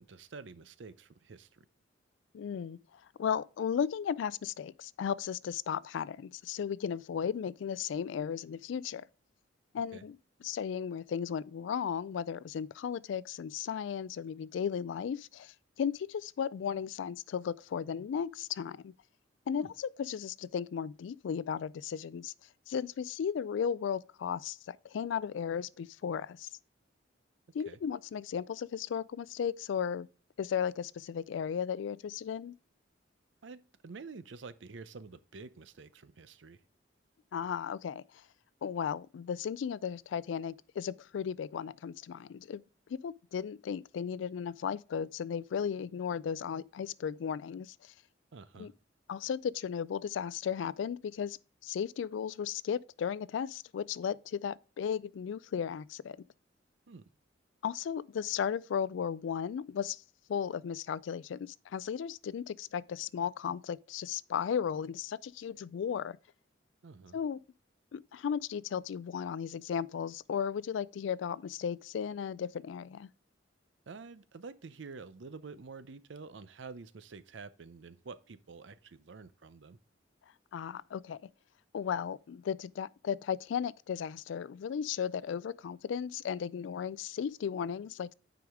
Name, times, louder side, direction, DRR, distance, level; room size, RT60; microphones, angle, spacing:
voice 1, 0.0-1.6 9.9-10.0 19.5-19.7 27.7-27.8 33.4-36.6 48.3-48.7 56.9-57.0 66.8-67.2 73.9-79.8, right 4 dB, 70° right, 0.6 m, -48 dB
voice 2, 2.3-2.8 3.2-9.1 9.7-10.2 10.4-18.9 19.5-22.3 22.7-26.5 27.5-30.1 30.4-32.5 37.3-38.0 38.6-42.6 42.9-47.9 48.6-48.7 49.1-51.4 51.6-56.2 57.6-60.0 60.3-66.2 67.1-67.4 67.9-73.1 80.5-81.2 81.7-88.1, left 7 dB, 70° left, 0.3 m, -35 dB
9.3 x 4.9 x 3.5 m
head